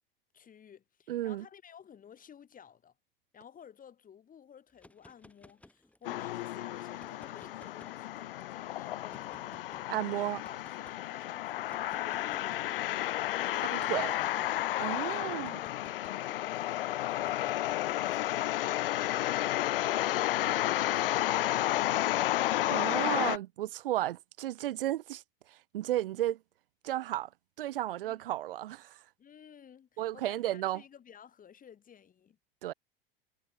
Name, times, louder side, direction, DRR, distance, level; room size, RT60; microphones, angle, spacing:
voice 1, 0.3-2.9 3.3-9.6 10.1-13.0 13.3-15.6 16.1-17.8 18.1-22.4 28.1-28.2 29.2-32.4, left 8 dB, 30° left, 5.8 m, -54 dB
voice 2, 1.1-1.4 9.9-10.4 13.7-14.1 14.8-15.6 22.7-25.2 25.5-26.4 26.8-27.3 27.6-29.0 30.0-30.8 32.6-32.7, right 14 dB, 70° right, 0.5 m, -33 dB
sound 1, 4.7-6.3 6.9-8.4 9.1-9.9 10.4-11.0 11.7-12.8 13.6-14.7 15.4-16.3 17.1-20.0 20.9-22.5, left 1 dB, 5° left, 3.3 m, -58 dB
sound 2, 6.0-23.4, left 14 dB, 70° left, 0.4 m, -32 dB
figure-of-eight pair, 80°, 29 cm